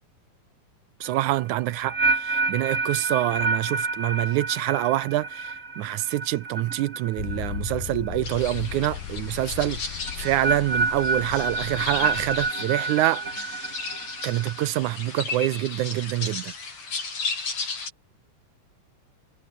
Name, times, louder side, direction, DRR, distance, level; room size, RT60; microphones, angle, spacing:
sound 1, 1.0-8.2 8.4-8.8 10.1-14.7, right 3 dB, 25° right, 3.2 m, -29 dB
voice 1, 1.0-13.9 14.2-16.5, right 15 dB, 75° right, 2.0 m, -26 dB
Motor vehicle (road), 7.2-12.5, left 11 dB, 85° left, 3.3 m, -36 dB
sound 2, 8.2-17.9, left 4 dB, 55° left, 6.4 m, -35 dB
omnidirectional pair, 3.8 m